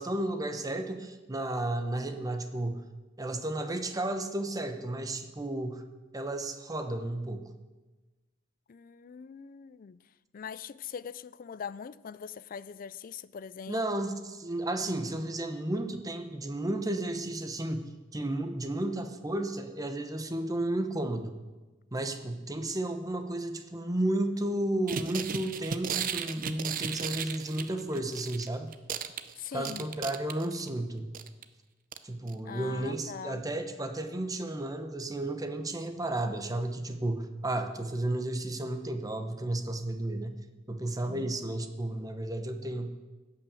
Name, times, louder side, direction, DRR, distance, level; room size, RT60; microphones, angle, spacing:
voice 1, 0.0-2.8 3.2-5.8 6.1-7.5 13.7-21.4 21.9-28.7 29.5-31.1 32.0-40.3 40.7-42.9, right 1 dB, 20° right, 0.9 m, -33 dB
voice 2, 8.7-10.0 10.3-13.9 29.4-29.9 32.5-33.5 41.0-41.4, left 7 dB, 45° left, 0.4 m, -42 dB
sound 1, 24.9-28.5 28.7-30.7 31.1-31.4 31.9-32.0 32.3-32.4, right 7 dB, 45° right, 0.6 m, -35 dB
16.0 x 5.8 x 6.9 m
head